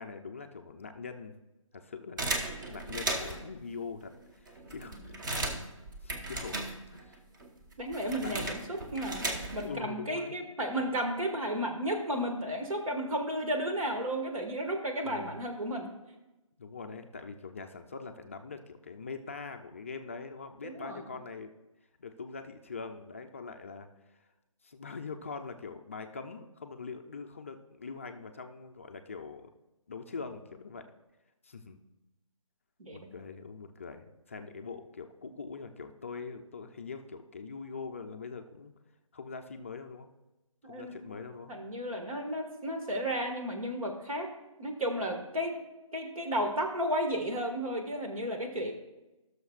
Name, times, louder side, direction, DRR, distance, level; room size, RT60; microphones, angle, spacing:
voice 1, 0.0-1.3 1.7-2.4 2.7-5.4 6.0-7.2 8.2-8.6 8.9-9.1 9.6-10.4 15.0-15.4 16.6-21.5 22.0-24.2 24.6-29.5 29.9-30.9 31.4-31.8 32.9-38.7 39.1-40.1 40.6-41.5, left 4 dB, 25° left, 5 dB, 0.3 m, -43 dB
sound 1, 2.2-3.5 4.2-4.3 4.5-7.1 7.4-9.8, right 2 dB, 35° right, 1.1 m, -36 dB
voice 2, 7.8-15.9 20.6-21.0 32.8-33.1 40.6-41.1 41.5-44.3 44.6-45.6 45.9-48.7, equal, 85° right, 4 dB, 1.9 m, -33 dB
17.0 x 6.4 x 2.4 m, 1.0 s
hypercardioid pair, 160°, 17 cm